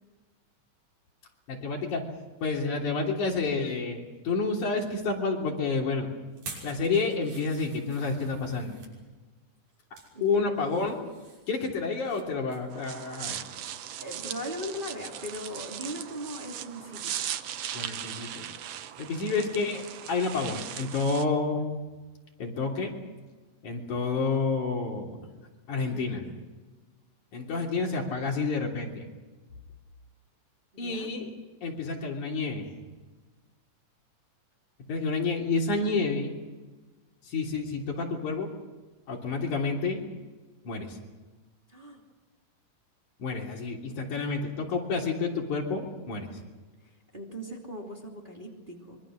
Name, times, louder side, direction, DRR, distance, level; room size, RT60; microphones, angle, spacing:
voice 1, 1.5-2.1 2.4-6.1 6.6-8.8 10.2-11.1 11.5-13.4 17.7-18.5 19.0-21.7 22.4-23.0 23.6-25.2 25.7-26.2 27.3-29.1 30.8-31.3 31.6-32.7 34.9-36.4 37.3-38.6 39.1-40.0 40.6-41.0 43.2-46.3, left 4 dB, 65° left, 0 dB, 4.6 m, -29 dB
sound 1, 6.3-8.9 9.6-10.1 10.5-12.2 12.5-12.7 13.1-13.2, right 3 dB, 90° right, 7.8 m, -47 dB
voice 2, 10.1-10.5 14.0-17.2 25.7-26.3 30.7-31.1 41.7-42.0 46.8-49.0, equal, 15° right, -1 dB, 2.9 m, -39 dB
sound 2, 12.7-21.2, right 10 dB, 65° right, 1.8 m, -38 dB
25.0 x 24.0 x 6.4 m, 1.3 s
omnidirectional pair, 3.7 m